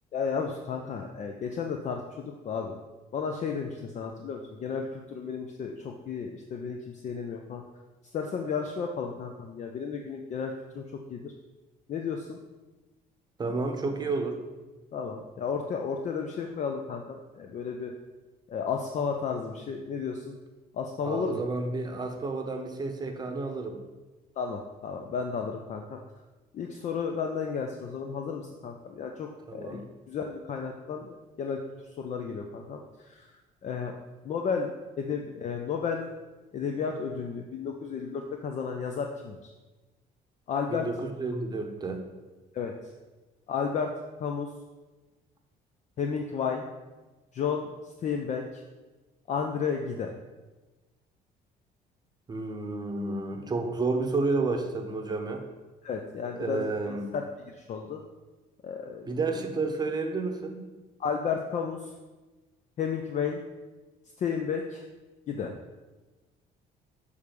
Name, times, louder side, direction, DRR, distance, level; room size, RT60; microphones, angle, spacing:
voice 1, 0.1-2.8 3.1-7.6 8.1-11.3 11.9-12.4 14.9-17.9 18.5-20.4 20.7-21.4 24.4-26.0 26.5-31.6 32.0-33.3 33.6-34.0 34.2-34.7 35.0-36.0 36.5-39.5 40.5-40.9 42.5-42.9 43.5-44.5 46.0-46.7 47.3-48.6 49.3-50.1 55.8-58.0 58.6-59.4 61.0-61.9 62.8-63.4 64.2-64.8 65.3-65.5, left 6 dB, 45° left, 3 dB, 0.5 m, -33 dB
voice 2, 13.4-14.4 21.0-23.8 29.5-29.8 40.7-42.0 52.3-55.4 56.3-57.1 59.1-60.6, right 3 dB, 25° right, 4 dB, 0.8 m, -31 dB
6.4 x 3.3 x 5.2 m, 1.2 s
cardioid pair, 110°, 17 cm